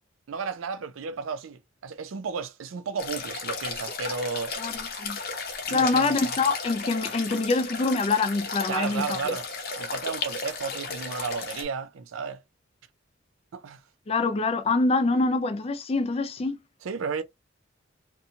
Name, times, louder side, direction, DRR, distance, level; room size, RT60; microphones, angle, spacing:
voice 1, 0.3-4.6 5.7-6.3 8.7-9.5 9.8-12.4 13.5-13.8 16.8-17.2, right 5 dB, 85° right, 0.4 m, -33 dB
sound 1, 3.0-11.6, left 4 dB, 50° left, 0.7 m, -34 dB
voice 2, 4.6-5.2 5.7-9.2 14.1-16.6, left 3 dB, 30° left, 0.3 m, -25 dB
2.6 x 2.2 x 2.7 m
head